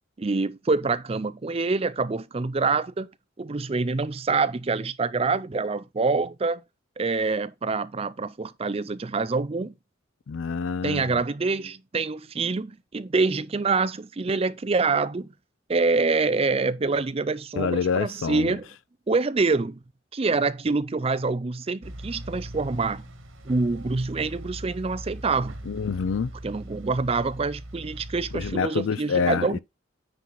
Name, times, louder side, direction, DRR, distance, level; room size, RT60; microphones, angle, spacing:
voice 1, 0.2-3.1 3.4-6.6 7.0-9.7 10.8-15.3 15.7-18.7 19.1-19.8 20.1-23.0 23.5-25.6 26.4-29.6, right 4 dB, 30° right, 0.5 m, -26 dB
voice 2, 10.3-11.2 17.6-18.6 25.7-26.3 28.3-29.6, left 5 dB, 75° left, 0.4 m, -27 dB
sound 1, 21.8-28.6, right 1 dB, 80° right, 2.0 m, -40 dB
9.5 x 4.6 x 3.9 m
head